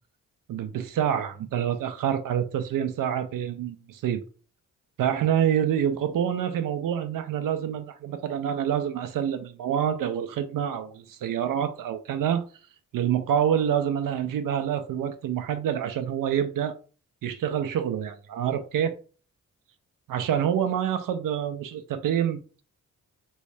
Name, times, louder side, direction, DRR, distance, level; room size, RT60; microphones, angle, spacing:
voice 1, 0.5-4.2 5.0-12.4 12.9-16.8 17.2-19.0 20.1-22.6, right 9 dB, 70° right, 0.5 m, -27 dB
3.1 x 2.6 x 3.3 m
cardioid pair, 60°, 34 cm